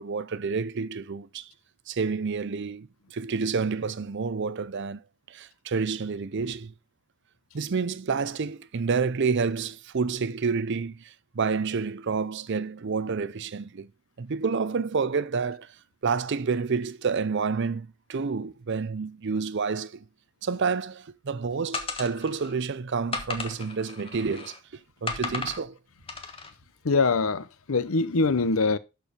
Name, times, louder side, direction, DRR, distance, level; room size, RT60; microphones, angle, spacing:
voice 1, 0.0-1.4 1.9-5.0 5.3-6.7 7.5-13.9 14.2-15.7 16.0-20.0 20.4-24.6 25.0-25.8, right 5 dB, 55° right, 0.5 m, -29 dB
sound 1, 21.7-22.5 23.1-24.6 25.1-25.6 26.1-26.5, left 4 dB, 25° left, 1.3 m, -35 dB
voice 2, 26.8-28.8, left 4 dB, 70° left, 0.7 m, -23 dB
12.0 x 4.6 x 5.0 m
head